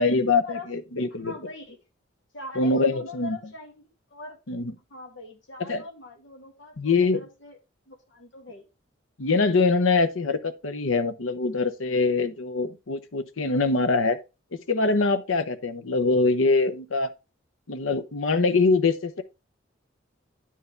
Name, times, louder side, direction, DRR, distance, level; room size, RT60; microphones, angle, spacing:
voice 1, 0.0-1.3 2.6-3.4 4.5-4.7 5.7-5.8 6.8-7.3 9.2-14.2 14.5-17.1 17.7-19.2, left 3 dB, 90° left, 0.8 m, -23 dB
voice 2, 1.1-1.8 2.3-4.4 4.9-7.6 7.9-8.7, left 2 dB, 65° left, 2.0 m, -42 dB
10.0 x 4.7 x 3.3 m
head